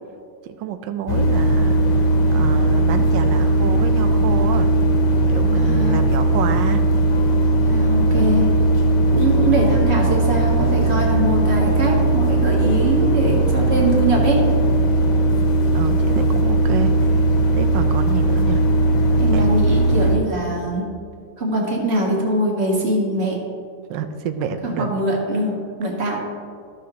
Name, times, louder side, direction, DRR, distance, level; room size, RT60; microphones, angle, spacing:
voice 1, 0.4-2.0 2.3-4.7 5.3-6.8 10.2-10.9 15.7-17.2 17.5-18.6 19.3-19.4 23.9-24.9, right 8 dB, 85° right, 8 dB, 1.3 m, -28 dB
sound 1, 1.1-20.2, right 1 dB, 75° left, 1.6 m, -18 dB
voice 2, 5.6-6.0 7.7-8.5 9.1-14.4 19.2-20.8 21.4-23.4 24.6-26.2, right 1 dB, 35° right, -2 dB, 1.7 m, -22 dB
14.0 x 6.5 x 2.8 m, 2.3 s
omnidirectional pair, 1.9 m